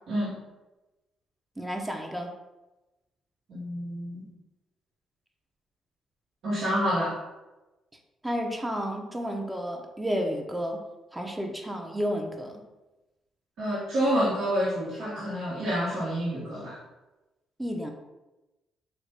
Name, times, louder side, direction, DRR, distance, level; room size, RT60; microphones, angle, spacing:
voice 1, 1.6-2.3 8.2-10.8 11.1-12.6 17.6-17.9, equal, 15° right, 2 dB, 0.6 m, -31 dB
voice 2, 3.5-4.3 6.4-7.2 13.6-16.8, equal, 70° right, -9 dB, 1.1 m, -28 dB
3.1 x 2.6 x 3.4 m, 1.0 s
hypercardioid pair, 55°, 0 cm